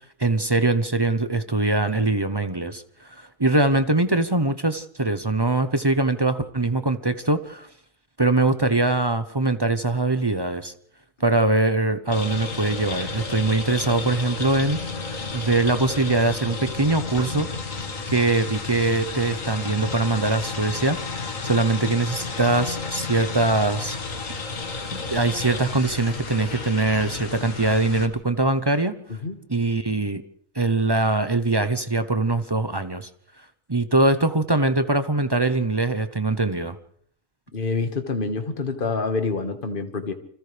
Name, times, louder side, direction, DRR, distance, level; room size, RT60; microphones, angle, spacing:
voice 1, 0.2-7.7 8.2-10.7 11.2-17.5 18.1-21.0 21.4-24.0 24.9-29.0 29.5-30.2 30.5-33.1 33.7-36.8, right 2 dB, 20° right, 10 dB, 0.7 m, -22 dB
sound 1, 12.1-28.1, left 4 dB, 70° left, 2.2 m, -32 dB
voice 2, 37.5-40.1, left 4 dB, 40° left, 6 dB, 1.8 m, -27 dB
30.0 x 25.5 x 3.4 m, 0.64 s
omnidirectional pair, 1.4 m